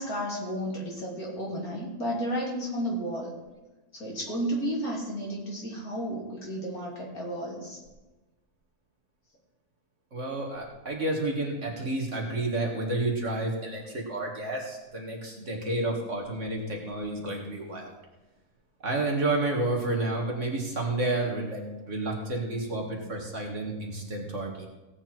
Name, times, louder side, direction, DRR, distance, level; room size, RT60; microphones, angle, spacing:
voice 1, 0.0-3.3 3.9-7.8, equal, 65° left, -3 dB, 3.7 m, -32 dB
voice 2, 10.1-17.9 18.8-24.7, right 2 dB, 50° right, 0 dB, 2.4 m, -30 dB
17.5 x 8.6 x 4.6 m, 1.1 s
omnidirectional pair, 1.7 m